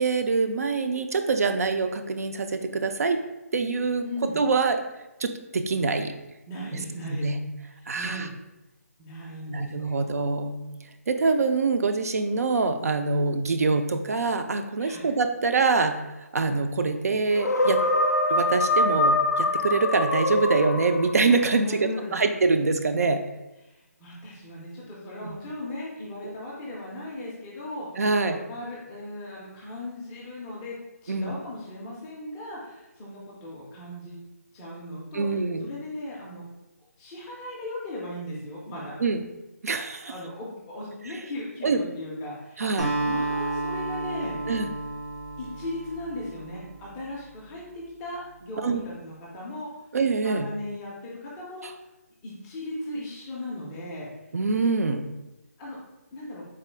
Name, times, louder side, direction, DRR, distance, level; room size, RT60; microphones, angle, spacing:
voice 1, 0.0-3.2 3.5-4.1 4.4-4.8 5.2-6.1 7.1-7.4 7.9-8.3 9.5-10.6 11.1-16.0 16.3-17.8 18.3-23.2 25.2-25.4 26.2-26.4 28.0-28.4 31.1-31.3 35.1-35.7 39.0-39.2 39.6-40.1 41.6-41.8 42.6-42.9 44.5-44.7 48.6-48.8 49.9-50.5 51.6-51.7 54.3-55.1, right 4 dB, 65° right, 7 dB, 0.3 m, -25 dB
voice 2, 4.0-4.4 6.5-7.3 7.9-8.3 9.0-9.7 10.0-10.1 14.8-15.1 21.6-22.2 23.6-34.2 34.5-36.4 37.0-39.0 40.1-42.7 43.0-44.4 45.4-49.7 50.2-51.7 52.2-54.1 55.6-55.8 56.1-56.4, left 1 dB, 10° left, -5 dB, 0.3 m, -37 dB
sound 1, 17.4-21.5, left 2 dB, 85° left, 0.4 m, -24 dB
Acoustic guitar, 42.8-47.3, right 2 dB, 90° right, 1.2 m, -31 dB
3.7 x 2.3 x 3.2 m, 0.99 s
hypercardioid pair, 165°, 9 cm